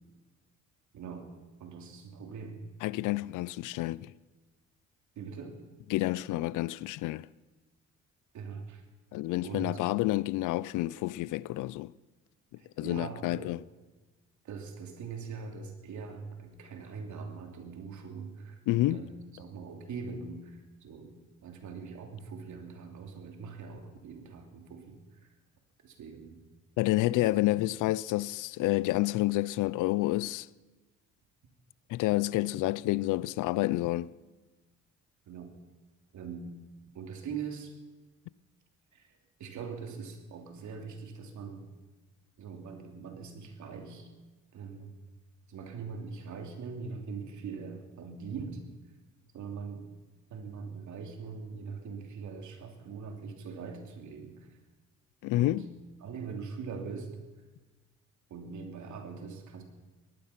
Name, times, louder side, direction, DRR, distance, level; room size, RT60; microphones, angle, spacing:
voice 1, 0.9-1.3 1.6-2.6 5.2-5.6 8.3-8.8 9.4-9.8 12.6-13.6 14.4-19.1 19.4-21.1 21.4-25.3 25.8-26.4 27.1-27.3 35.3-35.5 36.1-36.5 36.9-37.7 38.9-41.7 42.4-44.1 44.5-44.9 45.5-48.6 49.3-49.9 50.3-54.6 55.3-55.6 56.0-57.1 58.3-59.6, right 5 dB, 70° right, 2.9 m, -42 dB
voice 2, 2.8-4.1 5.9-7.3 9.1-11.9 12.8-13.6 18.7-19.0 26.8-30.5 31.9-34.1 55.2-55.6, left 17 dB, 85° left, 0.5 m, -29 dB
18.5 x 13.5 x 5.9 m
cardioid pair, 90°, 30 cm